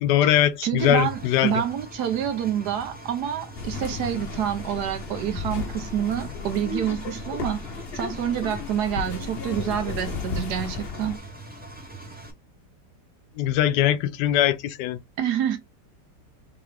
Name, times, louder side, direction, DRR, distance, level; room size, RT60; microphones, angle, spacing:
voice 1, 0.0-1.5 13.4-15.0, left 12 dB, 75° left, 1.1 m, -21 dB
voice 2, 0.6-11.2 15.2-15.6, right 10 dB, 70° right, 1.2 m, -27 dB
Engine, 0.8-12.3, right 2 dB, 10° right, 0.4 m, -42 dB
sound 1, 3.5-11.2, left 4 dB, 55° left, 0.7 m, -34 dB
3.6 x 3.4 x 3.2 m
omnidirectional pair, 1.9 m